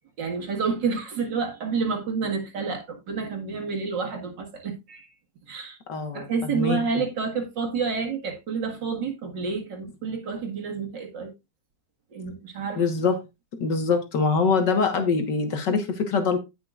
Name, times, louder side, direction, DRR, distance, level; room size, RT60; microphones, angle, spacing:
voice 1, 0.2-5.1 5.5-5.8 6.1-11.3 12.1-12.8, right 5 dB, 85° right, 2.5 m, -29 dB
voice 2, 5.9-6.8 12.7-13.2 13.5-16.4, left 4 dB, 75° left, 2.1 m, -24 dB
17.0 x 5.8 x 2.5 m
omnidirectional pair, 1.9 m